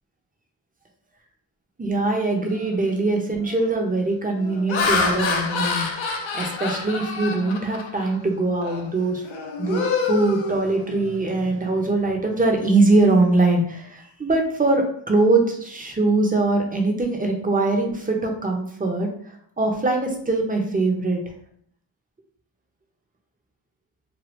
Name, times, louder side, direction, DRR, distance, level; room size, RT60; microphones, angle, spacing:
voice 1, 1.8-5.9 6.3-9.3 9.6-21.2, right 2 dB, 20° right, 2 dB, 0.5 m, -22 dB
Laughter, 2.6-2.9 3.5-3.8 4.4-8.2 8.6-8.9 9.2-11.2, left 4 dB, 75° left, 0.6 m, -27 dB
3.0 x 2.3 x 3.0 m, 0.63 s
wide cardioid pair, 110°, 48 cm